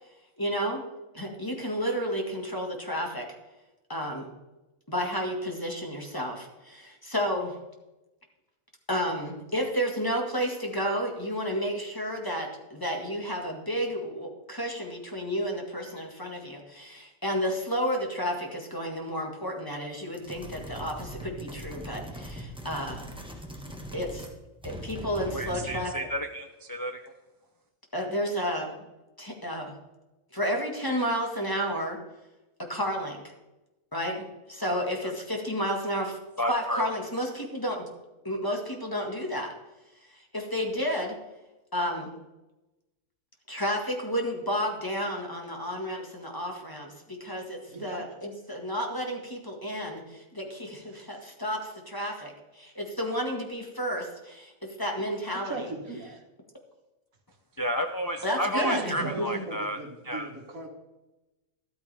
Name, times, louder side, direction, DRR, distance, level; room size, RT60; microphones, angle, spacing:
voice 1, 0.4-0.8 1.1-3.3 3.9-4.3 4.9-7.6 8.9-23.1 23.9-24.3 24.6-26.1 27.9-28.9 29.2-29.7 30.3-32.0 32.7-33.3 33.9-36.2 36.5-37.9 38.2-39.5 40.1-41.2 41.7-42.1 43.5-55.7 58.2-59.3, equal, 15° left, 1 dB, 1.8 m, -31 dB
sound 1, 20.1-24.4 24.6-25.9, right 1 dB, 5° right, 1.2 m, -40 dB
voice 2, 25.3-27.1 36.4-36.9 57.6-60.3, equal, 30° left, 5 dB, 0.3 m, -32 dB
voice 3, 47.7-48.1 50.9-51.0 55.3-56.2 58.5-60.7, right 2 dB, 75° right, 3 dB, 2.0 m, -38 dB
13.0 x 13.0 x 3.5 m, 1.0 s
omnidirectional pair, 1.4 m